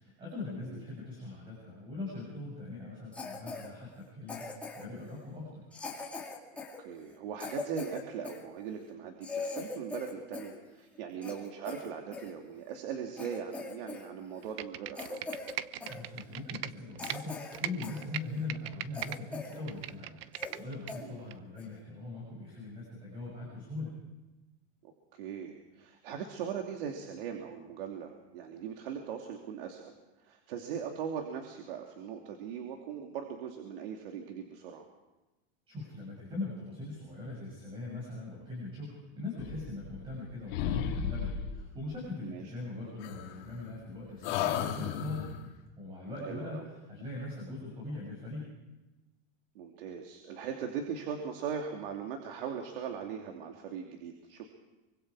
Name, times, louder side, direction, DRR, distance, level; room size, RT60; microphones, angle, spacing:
voice 1, 0.0-4.5 4.7-5.6 15.9-20.2 20.5-24.0 35.7-45.3 45.8-48.5, left 2 dB, 15° right, -4 dB, 6.8 m, -41 dB
Cough, 3.1-3.7 4.3-5.0 5.7-8.4 8.9-9.0 9.2-10.6 10.9-12.3 12.8-12.9 13.2-14.1 14.3-14.6 14.9-15.6 15.8-16.0 16.5-16.6 17.0-18.0 18.4-18.5 18.9-19.6 19.9-20.0 20.3-20.6 20.9-21.0 21.6-21.8, left 3 dB, 5° left, 2.4 m, -41 dB
voice 2, 6.8-15.2 21.0-21.2 24.8-30.0 30.2-34.8 42.2-42.4 46.3-46.7 49.5-54.5, right 7 dB, 65° right, 2 dB, 2.9 m, -40 dB
Computer keyboard, 14.4-17.2 17.5-19.2 19.5-20.9 21.3-21.4, right 13 dB, 80° right, 1.0 m, -39 dB
sound 1, 39.3-40.2 40.5-41.7 43.0-43.9 44.2-45.5, left 8 dB, 50° left, 3.3 m, -34 dB
25.0 x 24.5 x 4.9 m, 1.1 s
supercardioid pair, 180°, 29 cm